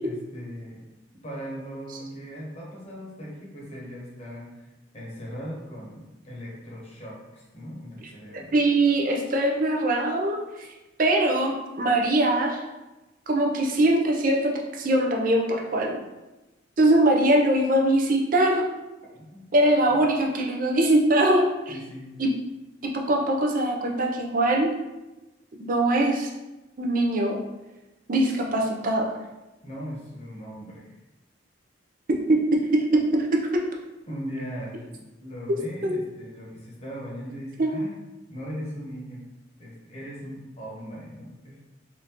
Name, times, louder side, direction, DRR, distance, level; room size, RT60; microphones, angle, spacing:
voice 1, 0.0-0.8 1.2-4.7 4.9-8.6 19.1-19.6 19.9-20.0 21.7-22.1 29.6-31.0 34.1-38.0 38.3-39.3 39.6-41.6, equal, 35° left, -5 dB, 0.9 m, -39 dB
voice 2, 8.3-10.7 11.0-12.6 13.3-16.0 16.8-18.6 19.5-21.7 22.2-22.3 22.9-24.7 25.6-26.3 26.8-27.4 28.1-29.1 32.3-32.4 32.7-33.3 33.5-33.6 35.8-36.0 37.6-37.7, right 1 dB, 45° right, 1 dB, 0.5 m, -22 dB
3.5 x 2.5 x 2.9 m, 1.0 s
head